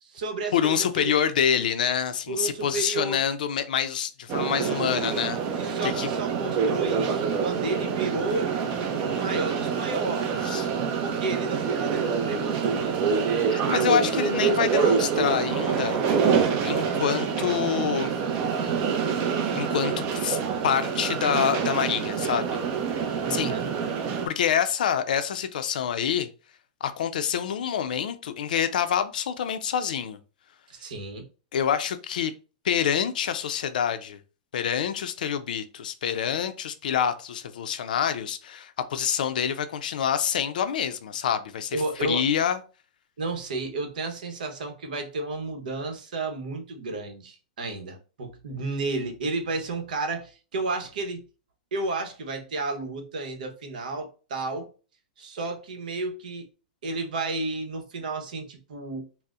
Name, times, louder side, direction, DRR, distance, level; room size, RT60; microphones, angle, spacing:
voice 1, 0.0-1.1 2.3-3.2 5.6-8.6 9.0-10.3 11.0-13.2 23.2-23.7 30.7-31.3 41.7-42.3 43.2-51.2 51.7-54.7 55.2-56.4 56.8-59.1, right 3 dB, 75° right, 0.9 m, -32 dB
voice 2, 0.5-6.1 10.4-10.7 13.5-16.0 16.6-18.1 19.2-22.6 23.0-23.5 24.2-26.3 26.8-30.2 31.5-32.3 32.6-34.2 34.5-42.6, left 8 dB, 75° left, 0.5 m, -27 dB
sound 1, 4.3-24.3, right 6 dB, 35° right, 0.5 m, -26 dB
4.0 x 2.1 x 2.4 m
hypercardioid pair, 150°, 5 cm